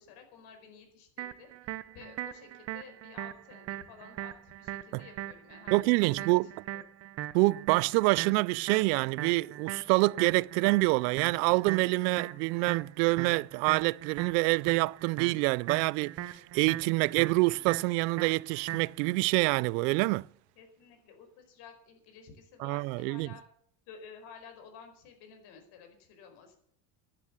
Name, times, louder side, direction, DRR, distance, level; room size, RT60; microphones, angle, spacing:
voice 1, 0.0-6.4 6.7-6.8 20.6-23.4 23.9-26.6, left 6 dB, 55° left, 4.8 m, -52 dB
sound 1, 1.2-19.2, right 13 dB, 30° right, 0.7 m, -40 dB
voice 2, 5.7-6.5 7.3-20.3 22.6-23.3, right 24 dB, 80° right, 0.5 m, -26 dB
13.0 x 11.0 x 7.2 m
cardioid pair, 165°, 47 cm